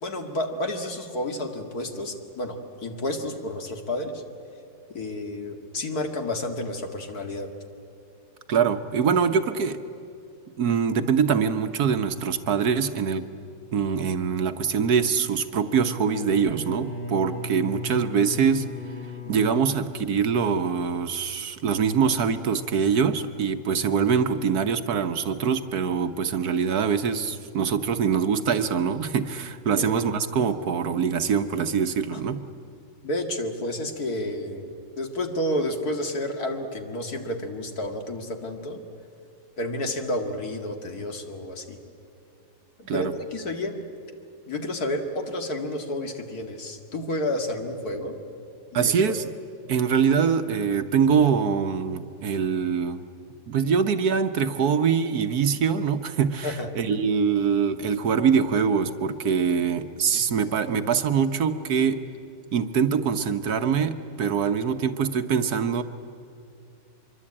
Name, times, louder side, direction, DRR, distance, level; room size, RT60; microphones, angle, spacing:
voice 1, 0.0-4.2 4.9-7.5 19.3-19.5 29.8-30.1 32.1-32.2 33.0-38.8 39.6-41.8 42.8-43.8 44.5-48.2 48.7-49.1 56.4-56.7 60.3-60.4, left 1 dB, 55° left, 4 dB, 2.5 m, -30 dB
voice 2, 8.5-9.8 10.6-13.3 13.7-18.7 19.3-32.4 42.9-43.1 48.7-49.2 49.7-53.0 53.5-62.0 62.5-65.8, right 6 dB, 60° right, 9 dB, 1.3 m, -24 dB
Bowed string instrument, 15.5-20.9, equal, 30° left, 7.1 m, -37 dB
25.0 x 23.0 x 8.7 m, 2.6 s
omnidirectional pair, 1.9 m